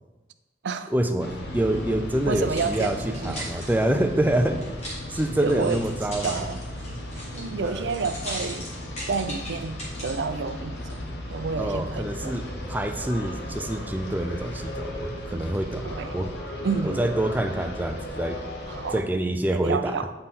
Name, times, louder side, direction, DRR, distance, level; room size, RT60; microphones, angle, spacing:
voice 1, 0.9-3.0 3.2-4.6 5.1-6.5 7.6-7.9 11.6-15.9 16.1-16.3 16.8-18.4 18.9-20.0, right 1 dB, 10° right, 7 dB, 0.4 m, -26 dB
sound 1, 1.2-19.0, left 1 dB, 70° left, 0.9 m, -36 dB
sound 2, 2.2-10.2 10.8-10.9, equal, 40° left, 2.2 m, -39 dB
voice 2, 2.3-3.7 5.4-5.8 6.2-6.6 7.3-8.7 9.1-11.0 11.3-12.6 15.8-16.1 16.6-17.1 18.7-19.0 19.5-20.1, right 4 dB, 80° right, 11 dB, 0.4 m, -30 dB
8.7 x 3.8 x 4.1 m, 1.1 s
head